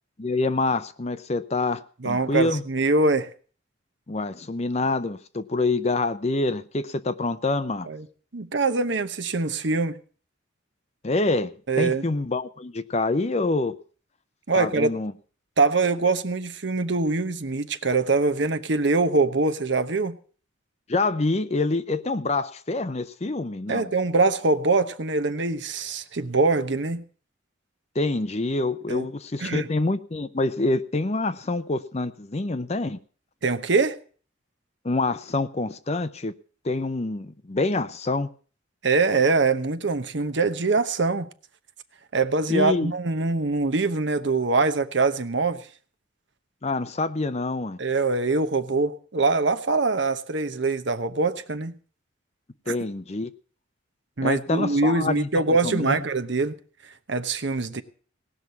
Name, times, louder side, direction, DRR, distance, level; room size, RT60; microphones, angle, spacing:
voice 1, 0.2-2.6 4.1-7.9 11.0-11.5 11.8-13.8 14.5-15.1 20.9-23.9 27.9-33.0 34.8-36.3 36.6-38.3 42.5-42.9 46.6-47.8 52.7-53.3 54.2-56.0, left 2 dB, 30° left, 0.6 m, -26 dB
voice 2, 2.0-3.3 7.9-8.1 8.3-10.0 11.7-12.1 14.5-14.9 15.6-20.2 23.7-27.0 28.9-29.0 29.4-29.7 33.4-34.0 38.8-41.3 42.1-45.6 47.8-51.7 52.7-52.8 54.2-56.5 57.1-57.8, right 3 dB, 60° right, 0.9 m, -23 dB
18.0 x 6.1 x 8.1 m
head